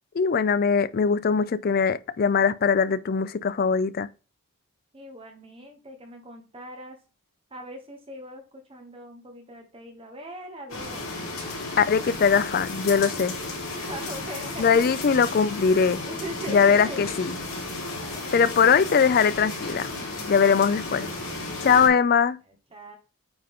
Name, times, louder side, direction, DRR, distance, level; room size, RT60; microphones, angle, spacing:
voice 1, 0.1-4.1 11.8-13.3 14.6-16.0 16.5-17.4 18.3-19.9 20.3-21.1 21.6-22.4, left 6 dB, 45° left, 0.3 m, -21 dB
voice 2, 4.9-7.0 7.5-11.5 13.7-14.9 16.1-17.1 17.5-17.6 17.9-18.7 22.7-23.0, equal, 25° right, 1.1 m, -41 dB
sound 1, 10.7-21.9, left 2 dB, 80° left, 3.3 m, -34 dB
8.8 x 3.7 x 3.6 m
head